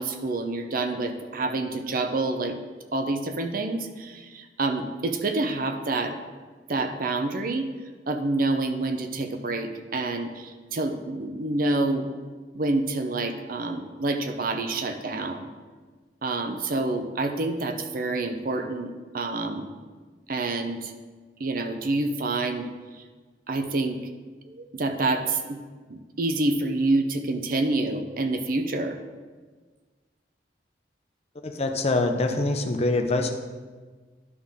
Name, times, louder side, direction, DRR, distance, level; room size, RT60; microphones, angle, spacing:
voice 1, 0.0-2.6 2.9-6.2 6.7-7.7 8.1-12.1 12.5-15.5 16.2-19.7 20.3-20.9 21.4-22.7 23.0-23.1 23.5-24.1 24.4-25.6 25.9-29.0, right 2 dB, 55° right, 7 dB, 0.7 m, -27 dB
voice 2, 31.4-33.3, left 2 dB, 35° left, 4 dB, 0.7 m, -24 dB
11.0 x 5.7 x 3.6 m, 1.4 s
head